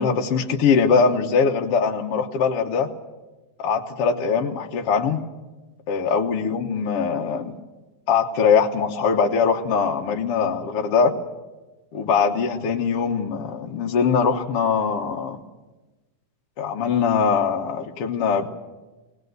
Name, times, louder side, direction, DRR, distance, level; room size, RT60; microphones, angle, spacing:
voice 1, 0.0-2.9 3.6-5.2 5.9-7.5 8.1-11.1 11.9-15.4 16.6-18.5, left 5 dB, 60° left, 2 dB, 1.6 m, -22 dB
19.5 x 19.5 x 8.0 m, 1.1 s
omnidirectional pair, 4.0 m